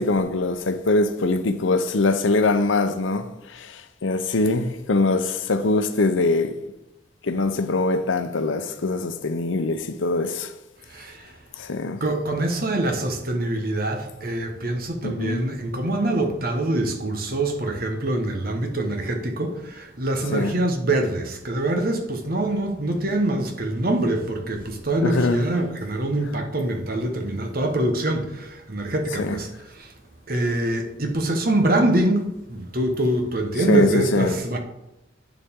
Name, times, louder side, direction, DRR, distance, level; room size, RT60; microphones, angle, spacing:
voice 1, 0.0-6.6 7.2-10.5 11.6-12.0 15.0-15.4 20.3-20.5 25.0-25.5 29.2-29.4 33.7-34.4, left 3 dB, 90° left, 0.7 m, -23 dB
voice 2, 10.9-11.3 12.0-29.9 30.3-34.6, right 1 dB, 50° right, 1.2 m, -24 dB
9.1 x 7.1 x 3.7 m
head